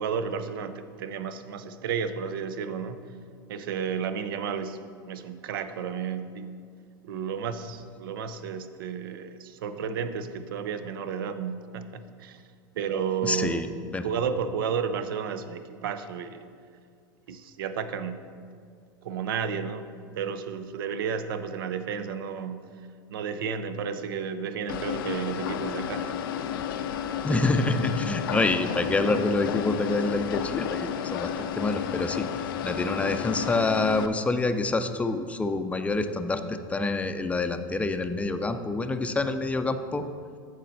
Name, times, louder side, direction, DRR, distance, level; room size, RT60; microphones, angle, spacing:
voice 1, 0.0-3.0 3.5-4.8 5.0-6.5 7.0-12.4 12.7-13.6 14.0-16.5 17.3-18.2 19.0-19.9 20.1-22.7 23.1-26.1, right 7 dB, 80° right, 11 dB, 0.6 m, -32 dB
voice 2, 13.2-13.7 13.9-14.0 27.2-32.3 32.6-40.0, left 3 dB, 10° left, 9 dB, 0.5 m, -27 dB
sound 1, 24.7-34.1, left 9 dB, 80° left, 0.5 m, -32 dB
8.4 x 6.4 x 4.1 m, 2.2 s
hypercardioid pair, 105°, 11 cm